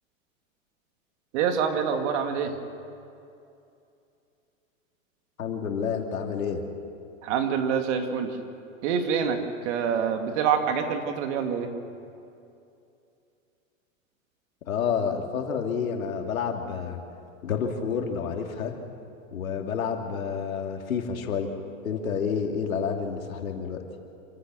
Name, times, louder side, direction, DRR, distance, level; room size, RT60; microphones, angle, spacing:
voice 1, 1.3-2.5 7.2-8.4 8.8-9.4 9.6-11.7, right 7 dB, 55° right, 5 dB, 2.5 m, -26 dB
voice 2, 5.4-6.6 14.7-17.0 17.4-18.7 19.3-21.5 21.8-23.8, left 6 dB, 85° left, 3 dB, 2.7 m, -29 dB
27.0 x 15.0 x 6.4 m, 2.6 s
hypercardioid pair, 120°, 41 cm